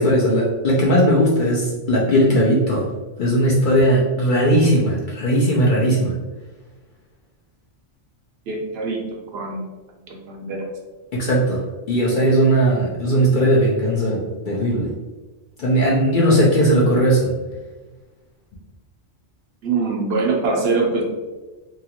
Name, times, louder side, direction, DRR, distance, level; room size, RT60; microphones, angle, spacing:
voice 1, 0.0-2.8 3.2-6.1 11.1-11.6 11.9-14.9 15.6-17.3, equal, 55° left, -4 dB, 0.6 m, -18 dB
voice 2, 8.5-9.0 9.3-9.6 10.1-10.7 19.6-21.1, right 3 dB, 65° right, 0 dB, 0.8 m, -23 dB
2.7 x 2.4 x 2.8 m, 1.2 s
omnidirectional pair, 1.2 m